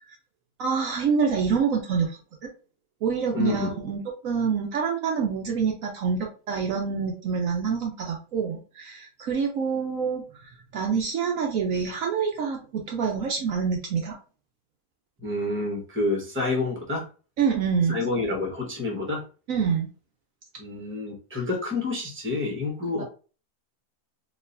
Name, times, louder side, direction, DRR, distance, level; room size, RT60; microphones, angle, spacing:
voice 1, 0.6-2.5 3.0-10.2 10.7-14.2 17.4-18.0 19.5-19.9 23.0-23.1, right 6 dB, 65° right, 1 dB, 1.0 m, -26 dB
voice 2, 3.3-3.8 15.2-17.1 17.9-19.2 20.6-23.0, left 3 dB, 10° right, -1 dB, 1.0 m, -28 dB
4.1 x 2.8 x 2.6 m, 0.36 s
omnidirectional pair, 1.6 m